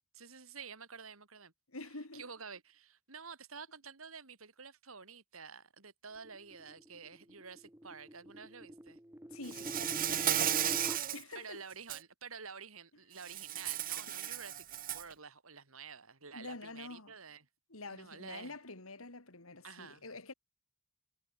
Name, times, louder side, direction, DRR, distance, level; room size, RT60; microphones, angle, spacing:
voice 1, 0.1-1.5 2.1-9.0 11.4-14.7 14.9-17.5 17.9-18.6 19.6-20.0, right 5 dB, 80° right, 3.6 m, -50 dB
voice 2, 1.7-2.2 9.3-11.6 14.1-14.2 16.3-17.1 17.7-20.3, left 2 dB, 90° left, 4.0 m, -48 dB
sound 1, 6.2-11.0, equal, 10° right, 2.6 m, -46 dB
Insect, 9.5-11.2 11.7-12.0 13.2-15.1, right 11 dB, 45° right, 1.1 m, -34 dB
head